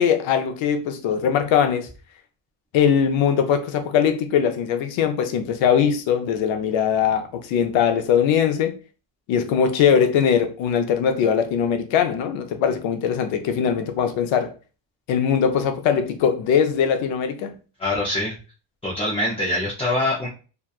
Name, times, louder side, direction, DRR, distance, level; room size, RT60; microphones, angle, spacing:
voice 1, 0.0-1.9 2.7-8.7 9.3-14.5 15.1-17.6, left 7 dB, 75° left, 0.6 m, -21 dB
voice 2, 17.8-18.3 18.8-20.3, left 1 dB, 15° left, 0.4 m, -24 dB
2.7 x 2.2 x 2.3 m
cardioid pair, 155°, 47 cm